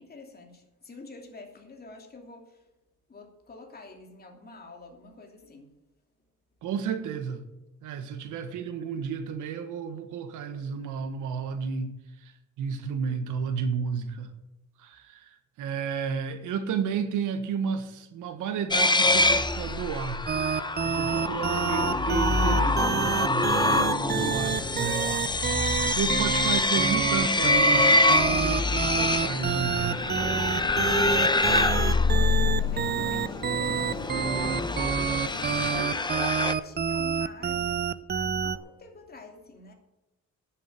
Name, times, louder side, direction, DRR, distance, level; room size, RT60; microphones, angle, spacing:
voice 1, 0.0-2.5 3.1-5.7 30.8-31.6 31.9-34.4 35.4-39.7, left 3 dB, 30° left, 2.8 m, -47 dB
voice 2, 6.6-7.4 7.8-11.9 12.2-14.3 14.8-20.2 20.5-25.2 25.4-30.0, right 6 dB, 85° right, 1.6 m, -32 dB
sound 1, 18.7-36.5, left 2 dB, 15° left, 0.8 m, -25 dB
sound 2, 20.3-38.6, right 7 dB, 35° right, 0.6 m, -28 dB
sound 3, 21.1-35.8, left 4 dB, 75° left, 2.4 m, -41 dB
10.5 x 7.6 x 8.9 m
cardioid pair, 90°, 30 cm